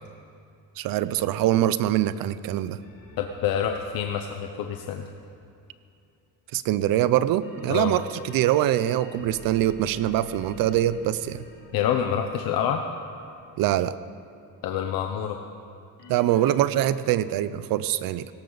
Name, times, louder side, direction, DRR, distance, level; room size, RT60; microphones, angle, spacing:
voice 1, 0.8-2.8 6.5-11.4 13.6-13.9 16.1-18.3, right 13 dB, 80° right, 15 dB, 0.6 m, -24 dB
sound 1, 2.8-5.5 7.4-13.9 16.0-16.5, left 3 dB, 65° left, 4.5 m, -47 dB
voice 2, 3.2-5.1 7.7-8.0 11.7-12.8 14.6-15.4, left 9 dB, 80° left, 4 dB, 0.9 m, -27 dB
18.5 x 18.0 x 4.0 m, 2.5 s
cardioid pair, 170°, 34 cm